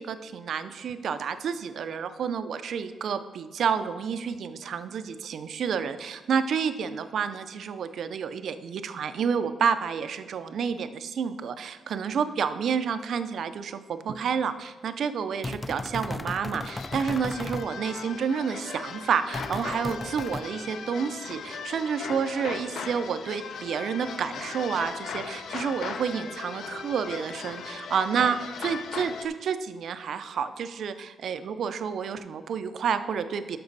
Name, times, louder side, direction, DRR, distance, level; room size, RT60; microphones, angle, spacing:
voice 1, 0.0-33.6, right 6 dB, 55° right, 11 dB, 0.5 m, -29 dB
sound 1, 15.4-17.7 19.3-20.4, left 2 dB, 15° left, 0.3 m, -35 dB
sound 2, 16.6-29.3, left 6 dB, 60° left, 0.6 m, -38 dB
12.0 x 6.0 x 4.0 m, 1.3 s
wide cardioid pair, 175°, 0 cm